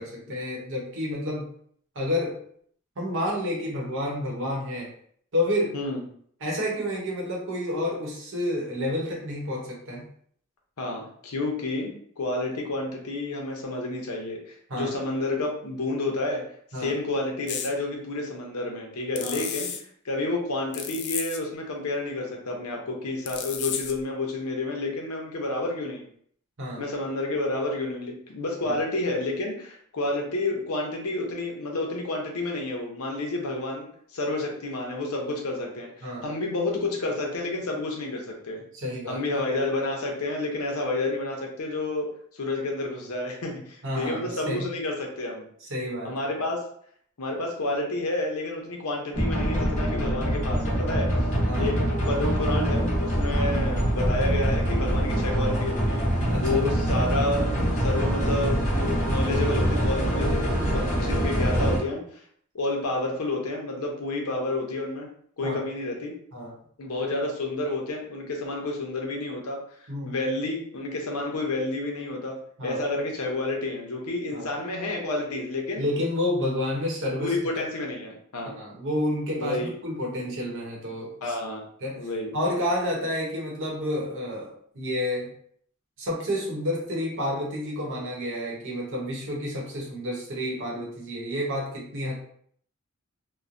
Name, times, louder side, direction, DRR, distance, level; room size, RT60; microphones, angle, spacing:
voice 1, 0.0-1.5 1.9-2.3 3.0-4.9 5.3-5.7 6.4-10.1 14.7-14.9 16.7-17.0 19.2-19.4 26.6-26.8 28.7-28.8 36.0-36.2 38.7-39.2 43.8-44.7 45.7-46.2 51.4-51.7 53.3-53.6 56.3-56.6 60.7-61.1 65.4-65.6 66.3-66.5 69.9-70.1 72.6-72.8 74.3-74.5 75.8-77.3 78.6-81.3 81.8-82.1 82.3-85.3 86.0-92.2, left 1 dB, 60° right, -2 dB, 0.9 m, -30 dB
voice 2, 10.8-16.4 16.8-19.7 20.0-26.1 26.8-38.6 39.1-42.1 42.3-45.5 46.0-46.6 47.2-51.1 51.6-62.0 62.5-65.1 65.4-66.1 66.8-69.6 70.1-72.4 72.6-75.9 77.2-78.6 79.4-79.7 81.2-81.6 82.0-82.3, left 2 dB, 75° left, 0 dB, 0.7 m, -30 dB
sound 1, 17.5-17.7 19.2-19.8 20.7-21.4 23.3-24.0, left 8 dB, 50° left, 0.3 m, -32 dB
sound 2, 49.1-61.8, equal, 35° left, 0.9 m, -24 dB
3.0 x 2.1 x 2.5 m, 0.62 s
head